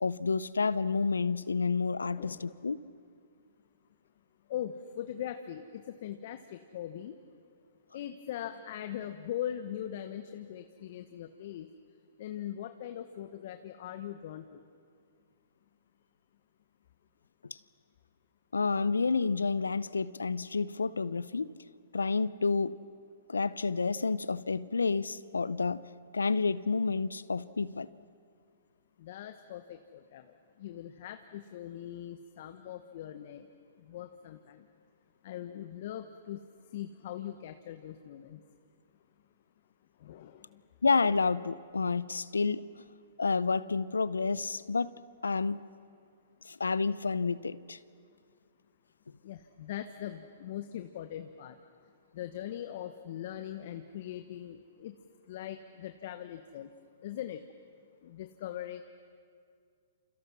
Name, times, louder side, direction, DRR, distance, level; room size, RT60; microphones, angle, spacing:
voice 1, 0.0-2.8 17.4-17.6 18.5-21.5 21.9-22.8 23.3-25.9 26.1-27.9 40.8-42.6 43.2-44.9 45.2-45.6 46.4-47.8, left 4 dB, 85° left, 18 dB, 0.7 m, -29 dB
voice 2, 2.1-2.5 4.5-7.2 7.9-11.7 12.2-14.6 29.0-30.2 30.6-33.5 33.8-34.6 35.2-36.4 36.7-38.4 40.0-40.6 49.2-51.6 52.1-54.9 55.3-56.7 57.0-57.4 58.0-58.8, left 11 dB, 55° left, 8 dB, 1.2 m, -41 dB
28.5 x 28.0 x 6.2 m, 2.2 s
hypercardioid pair, 125°, 0 cm